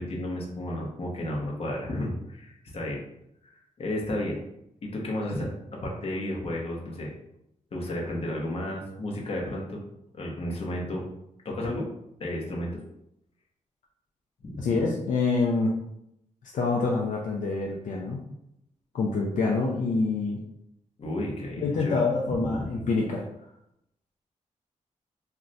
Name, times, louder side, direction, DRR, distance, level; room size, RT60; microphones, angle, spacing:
voice 1, 0.0-3.0 3.8-4.4 4.8-7.1 7.7-9.8 10.1-11.1 11.4-11.9 12.2-12.8 14.4-14.8 21.0-22.0 22.2-22.9, left 1 dB, 50° left, -2 dB, 0.8 m, -32 dB
voice 2, 14.6-15.7 16.5-18.2 18.9-20.4 21.6-23.2, left 3 dB, 75° left, -1 dB, 0.4 m, -26 dB
2.4 x 2.1 x 3.9 m, 0.80 s
cardioid pair, 100°, 13 cm